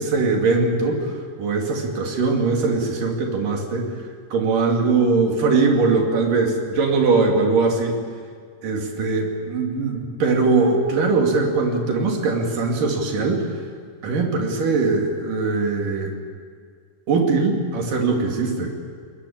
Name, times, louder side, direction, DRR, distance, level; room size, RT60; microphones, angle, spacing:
voice 1, 0.0-3.9 4.3-8.0 8.6-13.5 14.0-16.1 17.1-18.7, right 3 dB, 70° right, 2 dB, 4.3 m, -21 dB
21.5 x 19.5 x 8.8 m, 2.1 s
omnidirectional pair, 3.9 m